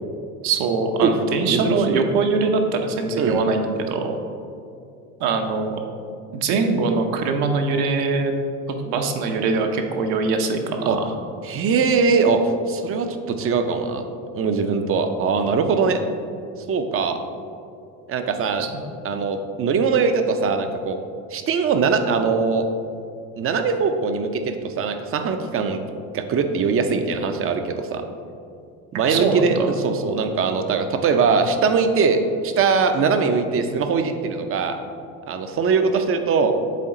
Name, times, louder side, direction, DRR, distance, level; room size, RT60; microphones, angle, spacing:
voice 1, 0.4-4.2 5.2-5.8 6.3-8.3 8.7-11.1 18.6-18.7 28.9-29.7, right 4 dB, 60° right, 4 dB, 0.9 m, -22 dB
voice 2, 1.5-2.0 3.2-3.4 10.9-11.0 11.4-14.0 14.3-16.0 16.7-17.2 18.1-18.6 19.0-21.0 21.3-22.7 23.4-25.8 26.1-28.0 29.0-34.8 35.3-36.5, right 5 dB, 30° right, 7 dB, 0.6 m, -21 dB
7.6 x 3.8 x 3.7 m, 2.4 s
hypercardioid pair, 80°, 43 cm